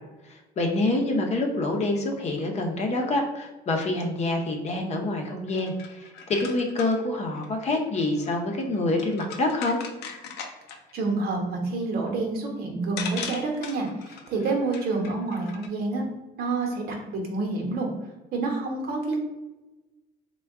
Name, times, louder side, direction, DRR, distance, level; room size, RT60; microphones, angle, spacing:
voice 1, 0.2-9.8, left 2 dB, 40° left, 2 dB, 0.7 m, -26 dB
sound 1, 5.5-10.9 12.5-12.6 13.0-15.7, left 6 dB, 80° left, 0.5 m, -40 dB
voice 2, 10.9-16.0 16.4-17.9 18.3-19.2, right 3 dB, 65° right, 1 dB, 0.9 m, -28 dB
3.4 x 2.2 x 3.5 m, 1.1 s
cardioid pair, 110°, 17 cm